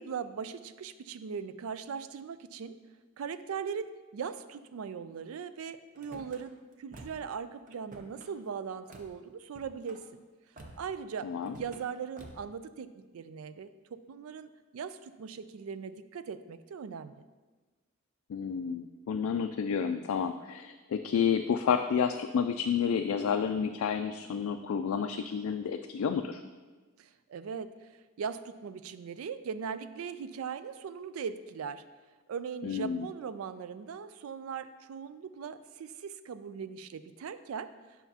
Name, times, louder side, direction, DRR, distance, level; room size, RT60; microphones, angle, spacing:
voice 1, 0.0-2.8 3.2-10.0 10.8-11.3 11.6-13.7 14.1-17.2 27.0-27.7 28.2-31.8 32.3-37.7, right 6 dB, 80° right, 13 dB, 0.4 m, -39 dB
Car / Slam, 5.9-6.4 6.9-7.3 7.7-8.3 8.9-9.1 9.5-10.0 10.6-11.0 11.4-11.8 12.2-12.5, right 2 dB, 40° right, 0.7 m, -50 dB
voice 2, 11.2-11.6 18.3-26.4 32.6-33.1, left 7 dB, 75° left, 6 dB, 0.3 m, -30 dB
9.1 x 5.7 x 2.8 m, 1.3 s
head